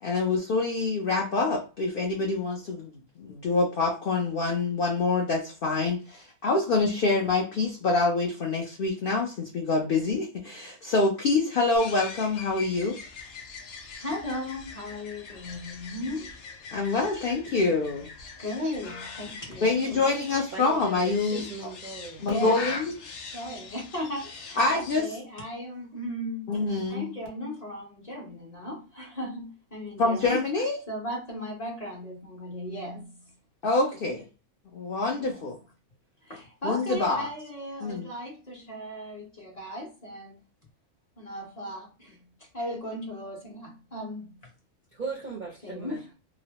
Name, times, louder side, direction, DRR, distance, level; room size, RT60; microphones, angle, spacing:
voice 1, 0.0-13.0 16.7-18.1 19.6-21.7 22.2-22.9 24.6-25.1 26.5-27.1 30.0-30.8 33.6-34.2 34.7-35.6 36.6-37.3 37.8-38.1, left 3 dB, 60° left, 0.6 m, -26 dB
sound 1, 11.8-25.0, left 4 dB, 75° left, 1.0 m, -42 dB
voice 2, 14.0-16.4 18.4-20.0 22.3-22.6 23.3-26.5 26.9-30.4 30.9-33.3 35.1-35.5 36.2-40.4 41.2-44.4 45.6-46.1, left 1 dB, 30° left, 1.0 m, -36 dB
voice 3, 20.5-22.6 44.9-46.0, right 4 dB, 50° right, 0.6 m, -38 dB
2.9 x 2.0 x 2.8 m
omnidirectional pair, 1.4 m